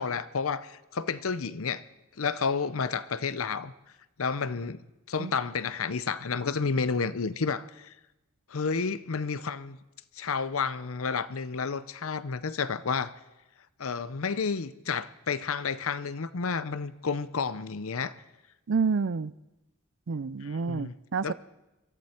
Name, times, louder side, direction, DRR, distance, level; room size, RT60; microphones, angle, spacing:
voice 1, 0.0-1.8 2.2-3.7 4.2-7.9 8.5-9.8 10.1-13.1 13.8-18.1 20.4-20.9 21.2-21.3, left 5 dB, 70° left, 0.7 m, -31 dB
voice 2, 18.7-19.3 20.1-21.3, right 5 dB, 55° right, 0.5 m, -29 dB
23.0 x 14.0 x 4.4 m
head